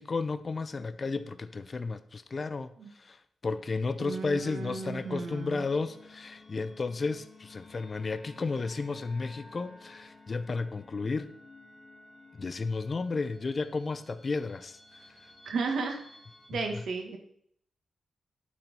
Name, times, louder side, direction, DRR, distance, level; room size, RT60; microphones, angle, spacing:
voice 1, 0.0-2.7 2.9-11.3 12.3-15.0 16.5-16.8, left 4 dB, 30° left, 0.5 m, -33 dB
voice 2, 4.0-5.6 15.4-16.0 16.5-17.2, right 4 dB, 75° right, 1.7 m, -34 dB
sound 1, 4.6-16.5, left 3 dB, 15° left, 3.5 m, -54 dB
11.0 x 4.5 x 5.4 m
wide cardioid pair, 155°, 0 cm